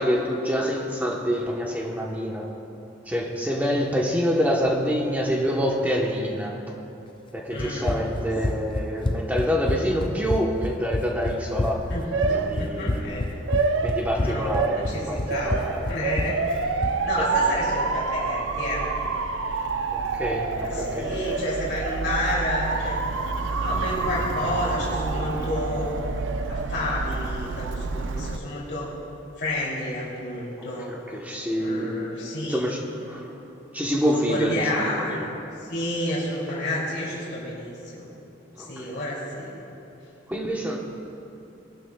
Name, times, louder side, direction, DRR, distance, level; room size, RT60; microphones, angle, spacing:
voice 1, 0.0-2.5 3.1-6.6 7.3-11.9 12.3-13.1 13.8-15.9 17.2-17.3 19.9-21.1 30.6-32.0 32.4-32.8 33.1-33.4 33.7-35.2 38.6-39.0 40.3-40.8, equal, 10° right, -1 dB, 1.0 m, -26 dB
voice 2, 7.5-7.9 11.9-13.2 14.2-15.0 15.3-15.5 15.9-16.4 17.0-18.9 20.5-23.0 23.5-25.9 26.5-28.9 29.4-30.9 31.6-32.6 33.0-33.2 34.1-35.3 35.7-38.1 38.6-39.5, left 1 dB, 60° left, -6 dB, 2.8 m, -30 dB
Run, 7.6-17.0, left 2 dB, 25° left, 0.4 m, -28 dB
Motor vehicle (road) / Siren, 11.6-28.4, right 4 dB, 85° right, 0.5 m, -28 dB
19.5 x 12.0 x 2.3 m, 2.9 s
head